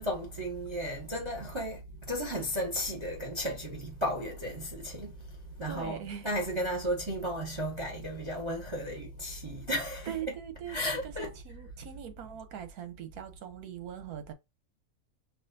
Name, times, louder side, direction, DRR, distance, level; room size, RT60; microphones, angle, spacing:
voice 1, 0.0-10.4 10.7-11.4, equal, 20° right, 0.9 m, -34 dB
voice 2, 5.7-6.3 10.1-14.3, right 9 dB, 80° right, 1.3 m, -41 dB
5.9 x 2.5 x 2.6 m
omnidirectional pair, 1.6 m